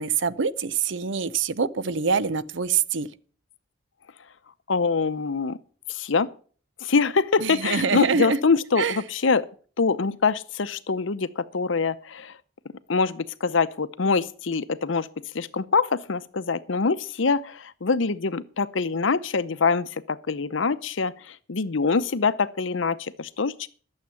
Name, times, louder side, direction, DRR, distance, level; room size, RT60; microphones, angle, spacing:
voice 1, 0.0-3.1 7.4-8.4 8.8-9.0, right 5 dB, 65° right, 0.7 m, -25 dB
voice 2, 4.7-5.6 5.9-6.3 6.8-9.4 9.8-12.3 12.9-15.1 15.3-23.7, left 4 dB, 70° left, 0.7 m, -24 dB
12.0 x 7.4 x 7.0 m
head